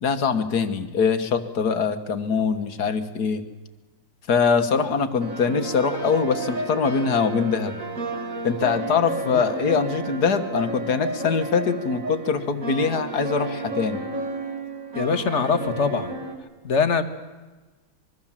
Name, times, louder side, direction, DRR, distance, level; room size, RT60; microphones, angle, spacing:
voice 1, 0.0-3.5 4.3-7.8 8.4-14.0, left 5 dB, 55° left, 9 dB, 1.8 m, -23 dB
sound 1, 5.2-16.3, right 2 dB, 40° right, 2.6 m, -32 dB
voice 2, 15.0-16.1 16.6-17.0, left 5 dB, 40° left, 10 dB, 1.6 m, -23 dB
25.5 x 22.5 x 7.4 m, 1.2 s
omnidirectional pair, 2.2 m